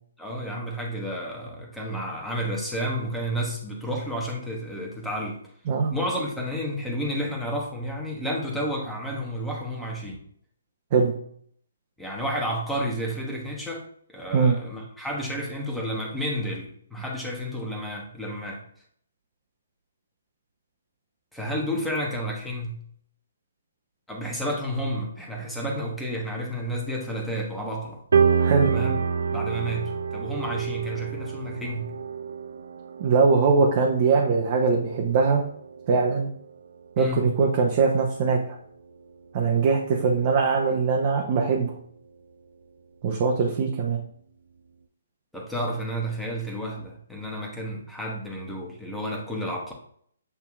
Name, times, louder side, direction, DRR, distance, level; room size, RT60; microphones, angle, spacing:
voice 1, 0.2-5.4 5.9-10.2 12.0-18.6 21.3-22.8 24.1-28.0 28.6-29.0 29.3-32.0 37.0-37.4 45.3-49.7, equal, ahead, -2 dB, 1.1 m, -31 dB
sound 1, 28.1-37.5 37.9-38.2 38.7-38.8 39.4-39.5, right 6 dB, 65° right, 0.4 m, -28 dB
voice 2, 28.4-28.7 33.0-35.4 35.9-36.3 37.0-38.6 39.3-41.8 43.0-44.0, right 4 dB, 40° right, 0 dB, 0.7 m, -21 dB
8.0 x 2.8 x 2.4 m, 0.63 s
figure-of-eight pair, 135°, 0 cm